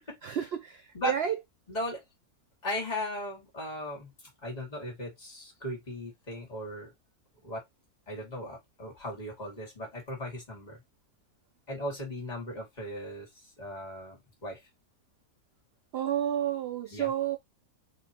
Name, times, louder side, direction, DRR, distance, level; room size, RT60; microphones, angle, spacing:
voice 1, 0.2-1.3 15.9-17.4, right 10 dB, 75° right, 0.5 m, -30 dB
voice 2, 1.7-2.0 2.6-4.1 4.4-6.9 7.4-7.6 8.1-10.8 11.7-13.3 13.6-14.6 16.9-17.1, left 1 dB, 25° left, 1.8 m, -37 dB
4.0 x 2.9 x 2.9 m
omnidirectional pair, 1.6 m